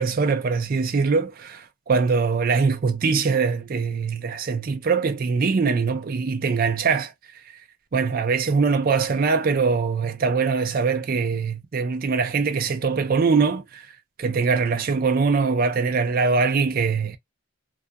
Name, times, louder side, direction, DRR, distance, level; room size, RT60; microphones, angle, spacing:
voice 1, 0.0-7.1 7.9-13.9 14.2-17.2, right 5 dB, 45° right, 0.4 m, -22 dB
2.4 x 2.2 x 2.5 m
head